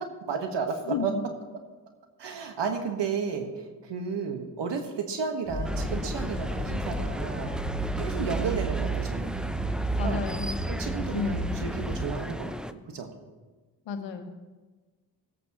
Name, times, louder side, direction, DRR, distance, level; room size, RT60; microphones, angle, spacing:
voice 1, 0.2-1.1 2.2-7.5 8.0-9.4 10.0-10.2 10.7-13.1, right 5 dB, 70° right, 5 dB, 1.6 m, -32 dB
voice 2, 0.9-1.2 10.0-10.6 11.1-11.5 13.9-14.2, left 6 dB, 80° left, 6 dB, 1.3 m, -31 dB
sound 1, 5.5-12.1, right 2 dB, 15° right, 2.5 m, -32 dB
sound 2, 5.6-12.7, equal, ahead, 0.5 m, -37 dB
19.0 x 8.6 x 3.1 m, 1.3 s
supercardioid pair, 45°, 44 cm